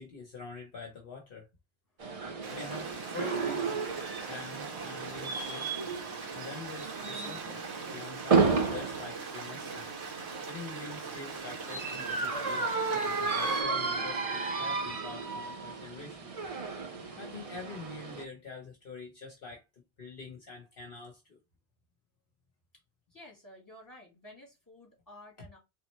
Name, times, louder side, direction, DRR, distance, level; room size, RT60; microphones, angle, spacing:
voice 1, 0.0-1.5 2.5-3.7 4.2-5.7 6.3-7.6 7.9-9.9 10.5-16.3 17.2-19.6 20.0-21.4, left 4 dB, 55° left, 1.1 m, -45 dB
sound 1, 2.0-18.2, right 4 dB, 40° right, 0.6 m, -33 dB
Stream, 2.4-13.6, right 4 dB, 70° right, 1.7 m, -41 dB
voice 2, 23.1-25.6, left 1 dB, 15° left, 2.4 m, -52 dB
4.1 x 3.7 x 3.1 m
omnidirectional pair, 1.1 m